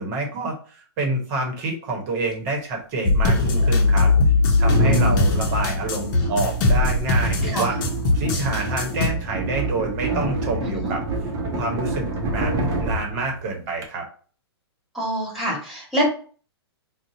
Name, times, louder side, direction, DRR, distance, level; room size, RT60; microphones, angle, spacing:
voice 1, 0.0-4.1 4.6-7.7 8.1-11.0 11.6-14.0, right 2 dB, 40° right, 2 dB, 1.0 m, -27 dB
sound 1, 2.2-2.3 3.2-13.9, right 2 dB, 25° right, 0.7 m, -28 dB
sound 2, 3.0-9.1, left 3 dB, 45° left, 0.7 m, -20 dB
voice 2, 4.7-5.3 7.4-7.7 10.6-11.0 14.9-16.0, equal, ahead, -6 dB, 1.6 m, -27 dB
2.6 x 2.2 x 3.8 m, 0.41 s
hypercardioid pair, 125°, 14 cm